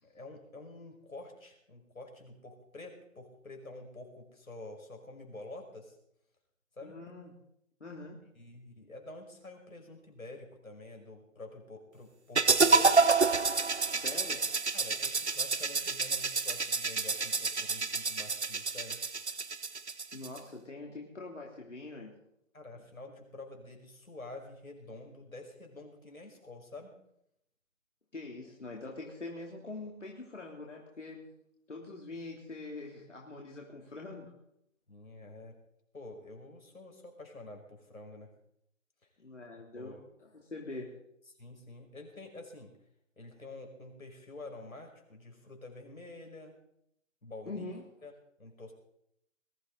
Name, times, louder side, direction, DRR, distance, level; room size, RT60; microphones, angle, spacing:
voice 1, 0.0-6.0 6.8-7.0 8.3-12.9 14.7-19.0 22.5-26.9 34.9-35.6 35.9-38.3 39.8-40.0 41.4-42.7 43.2-46.6 47.2-47.7 48.0-48.1 48.4-48.7, left 2 dB, 90° left, 2 dB, 5.4 m, -48 dB
voice 2, 6.8-7.3 7.8-8.2 14.0-14.4 20.1-22.2 28.1-31.3 31.7-34.3 39.2-40.9 47.5-47.8, left 2 dB, 60° left, -1 dB, 3.0 m, -44 dB
sound 1, 12.4-20.4, right 4 dB, 55° right, 0.8 m, -28 dB
21.0 x 13.0 x 4.0 m, 0.75 s
figure-of-eight pair, 180°, 40 cm